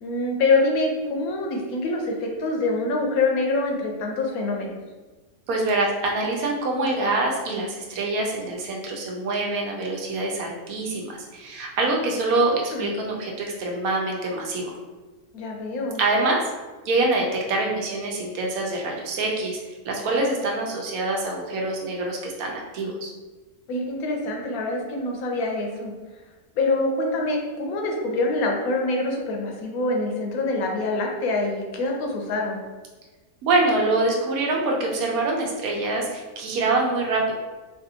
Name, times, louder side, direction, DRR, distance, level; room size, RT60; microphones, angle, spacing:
voice 1, 0.0-4.7 12.5-12.9 15.3-16.0 23.7-25.9 26.6-32.6, left 2 dB, 90° left, 1 dB, 1.1 m, -25 dB
voice 2, 5.5-14.7 16.0-16.4 16.8-19.6 19.8-23.1 33.4-37.3, right 2 dB, 85° right, 0 dB, 1.1 m, -25 dB
3.3 x 2.6 x 2.7 m, 1.3 s
omnidirectional pair, 1.5 m